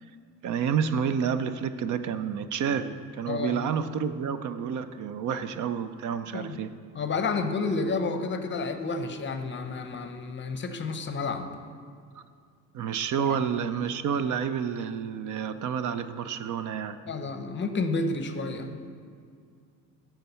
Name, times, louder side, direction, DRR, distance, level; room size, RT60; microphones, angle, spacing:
voice 1, 0.4-6.7 12.1-12.2 12.7-17.0, right 7 dB, 55° right, 11 dB, 0.5 m, -29 dB
voice 2, 3.3-3.6 6.3-6.6 6.9-11.5 13.2-13.4 17.1-18.7, left 3 dB, 35° left, 8 dB, 0.7 m, -30 dB
9.8 x 4.6 x 6.8 m, 2.2 s
cardioid pair, 120°, 35 cm